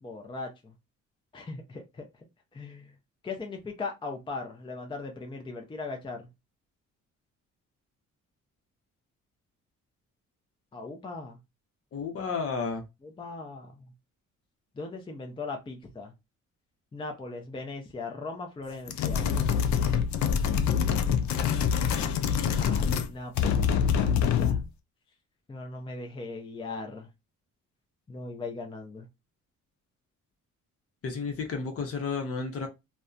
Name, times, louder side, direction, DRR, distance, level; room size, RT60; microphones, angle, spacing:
voice 1, 0.0-0.7 1.3-2.1 2.5-2.9 3.2-6.3 10.7-11.4 13.0-13.9 14.8-16.1 16.9-19.5 22.6-24.6 25.5-27.1 28.1-29.1, left 3 dB, 15° left, 0.5 m, -39 dB
voice 2, 11.9-12.8 31.0-32.7, left 5 dB, 50° left, 0.9 m, -32 dB
sound 1, 18.9-23.1 23.4-24.7, left 7 dB, 70° left, 0.5 m, -25 dB
2.6 x 2.2 x 2.4 m
cardioid pair, 90°, 30 cm